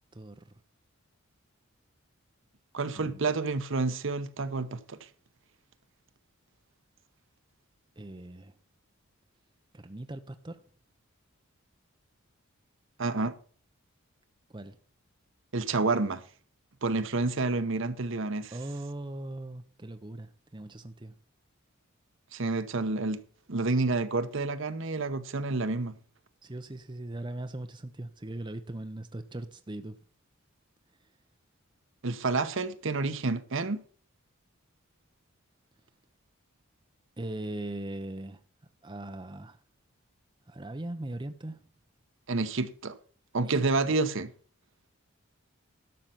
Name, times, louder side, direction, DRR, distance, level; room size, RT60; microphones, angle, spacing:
voice 1, 0.1-0.5 2.9-3.2 8.0-8.5 9.7-10.6 14.5-14.8 18.5-21.1 26.4-30.0 37.2-38.4 38.8-39.6 40.5-41.6 43.5-43.6, right 1 dB, 20° right, 0.7 m, -39 dB
voice 2, 2.7-5.0 13.0-13.3 15.5-16.2 16.8-18.6 22.3-23.2 23.5-25.9 32.0-33.8 42.3-42.9 43.3-44.3, right 3 dB, 60° right, 0.9 m, -29 dB
12.0 x 6.6 x 5.8 m
head